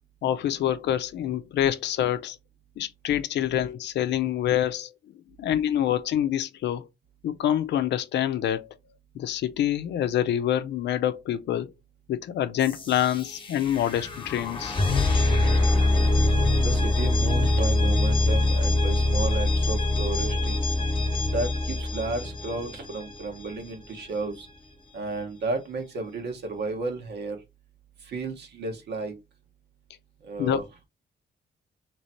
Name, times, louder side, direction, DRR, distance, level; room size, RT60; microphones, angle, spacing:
voice 1, 0.2-2.4 2.8-4.9 5.4-6.9 7.2-8.7 9.1-11.7 12.1-14.8 30.4-30.6, left 11 dB, 85° left, 0.5 m, -26 dB
sound 1, 12.6-23.4, left 2 dB, 30° left, 1.0 m, -24 dB
voice 2, 16.6-20.6 21.3-24.5 24.9-27.4 28.0-29.2 30.2-30.6, right 3 dB, 75° right, 1.2 m, -33 dB
3.1 x 3.0 x 4.1 m
cardioid pair, 130°, 18 cm